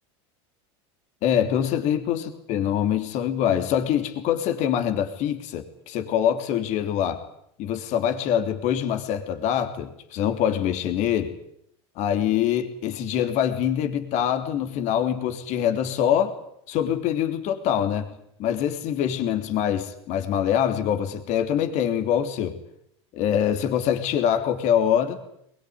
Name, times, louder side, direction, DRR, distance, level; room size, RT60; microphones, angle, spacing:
voice 1, 1.2-7.2 7.6-11.3 11.9-16.3 16.7-18.1 18.4-22.6 23.1-25.2, left 9 dB, 50° left, 7 dB, 3.3 m, -24 dB
22.0 x 22.0 x 9.7 m, 0.72 s
supercardioid pair, 120°, 15 cm